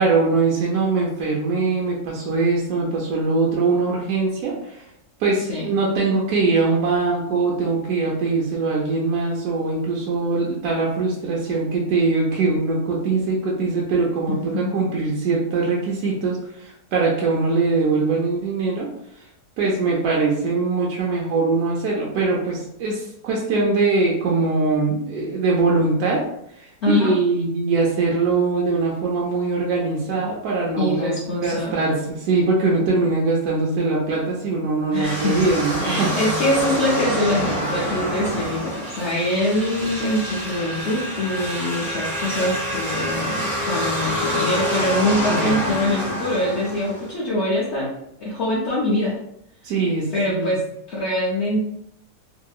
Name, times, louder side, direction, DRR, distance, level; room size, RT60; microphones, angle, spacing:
voice 1, 0.0-4.9 5.2-18.9 19.2-19.3 19.6-26.3 26.5-36.1 45.3-45.5 49.6-50.5, right 3 dB, 70° right, -3 dB, 1.0 m, -22 dB
voice 2, 5.4-5.7 14.3-14.7 26.8-27.2 30.8-31.8 34.9-35.5 35.8-47.9 48.2-49.1 50.1-50.6 50.9-51.6, left 1 dB, 70° left, -6 dB, 0.6 m, -24 dB
sound 1, 35.0-47.1, equal, ahead, 0.5 m, -27 dB
2.8 x 2.6 x 2.3 m, 0.76 s
omnidirectional pair, 1.9 m